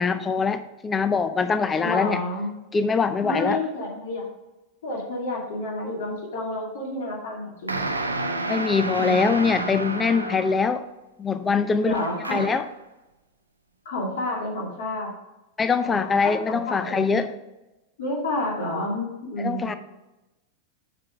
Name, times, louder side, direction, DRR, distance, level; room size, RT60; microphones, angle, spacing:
voice 1, 0.0-2.2 2.7-3.6 8.5-10.8 11.2-12.0 12.3-12.6 15.6-17.3 19.4-19.7, left 5 dB, 15° left, 11 dB, 0.6 m, -23 dB
voice 2, 1.8-2.5 3.2-4.3 4.8-7.9 9.0-9.3 11.8-12.5 13.8-15.1 15.8-17.3 18.0-19.8, left 1 dB, 60° left, -2 dB, 2.6 m, -30 dB
sound 1, 7.7-10.7 11.9-12.7, right 2 dB, 80° right, 0.7 m, -30 dB
7.6 x 6.0 x 5.0 m, 1.0 s
figure-of-eight pair, 90°, 0 cm